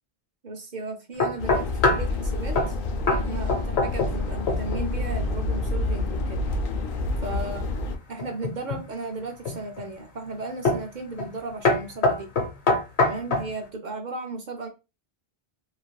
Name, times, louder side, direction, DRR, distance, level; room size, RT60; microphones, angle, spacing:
voice 1, 0.4-2.8 3.1-6.4 7.2-7.6 8.1-12.3 13.0-14.7, right 3 dB, 55° right, 4 dB, 0.6 m, -35 dB
sound 1, 1.2-2.1 2.5-2.8 3.1-3.2 3.5-4.2 4.5-4.8 8.2-8.8 9.4-9.9 10.6-10.9 11.2-11.4 11.6-13.5, left 3 dB, 80° left, 1.1 m, -23 dB
sound 2, 1.4-7.9, left 2 dB, 65° left, 0.7 m, -28 dB
3.1 x 2.4 x 2.2 m, 0.28 s
omnidirectional pair, 1.1 m